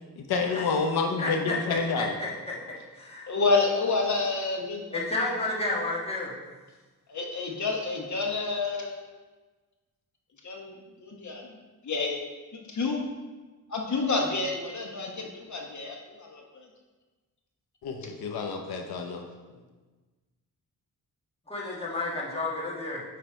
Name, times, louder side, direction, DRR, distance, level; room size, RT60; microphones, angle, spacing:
voice 1, 0.2-2.2 17.8-19.2, left 4 dB, 85° left, 3 dB, 0.7 m, -29 dB
voice 2, 1.2-3.3 4.9-6.4 21.5-23.0, left 2 dB, 15° left, -5 dB, 1.4 m, -31 dB
voice 3, 3.3-5.0 7.1-9.0 10.4-10.7 11.0-11.5 11.8-12.2 12.5-13.0 13.7-16.6, left 3 dB, 50° left, 1 dB, 1.1 m, -29 dB
9.1 x 3.3 x 4.4 m, 1.3 s
wide cardioid pair, 120°, 37 cm